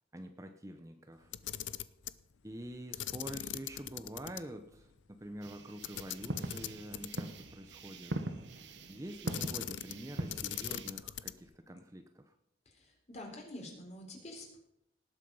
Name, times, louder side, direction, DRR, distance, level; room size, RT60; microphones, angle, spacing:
voice 1, 0.1-1.3 2.4-8.1 8.9-12.3, right 1 dB, 15° right, 6 dB, 0.7 m, -46 dB
Camera, 1.2-2.2 2.9-4.4 4.7-4.8 5.8-7.4 9.3-10.0 10.3-11.5, left 11 dB, 90° left, 0.6 m, -40 dB
sound 1, 5.4-10.9, right 1 dB, 75° right, 1.3 m, -42 dB
voice 2, 12.7-14.6, left 1 dB, 35° left, 0 dB, 3.8 m, -47 dB
18.5 x 8.2 x 5.5 m, 0.77 s
head